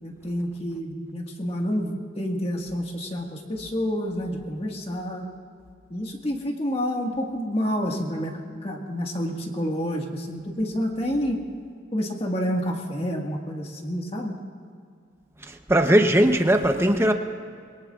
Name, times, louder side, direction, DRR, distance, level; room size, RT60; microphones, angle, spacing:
voice 1, 0.0-5.3 5.9-8.3 8.6-11.4 11.9-14.3, equal, 30° left, 1.7 m, -28 dB
voice 2, 15.4-17.1, right 1 dB, 15° right, 0.8 m, -19 dB
26.0 x 22.5 x 2.5 m
head